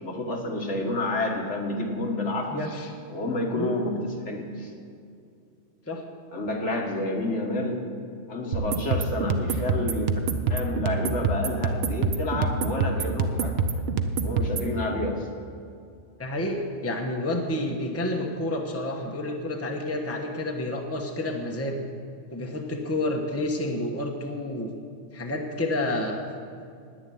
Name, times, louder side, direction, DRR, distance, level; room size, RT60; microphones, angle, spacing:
voice 1, 0.0-2.8 3.1-4.7 6.3-7.8 8.3-10.2 10.5-13.7 14.2-15.3, left 2 dB, 65° left, 1 dB, 1.8 m, -29 dB
voice 2, 2.5-2.9 3.5-3.7 5.9-6.0 16.2-21.9 22.3-24.7 25.1-26.2, left 1 dB, 10° left, 1 dB, 1.1 m, -29 dB
sound 1, 8.5-14.7, right 4 dB, 60° right, 0.9 m, -26 dB
10.5 x 9.8 x 9.3 m, 2.4 s
omnidirectional pair, 1.3 m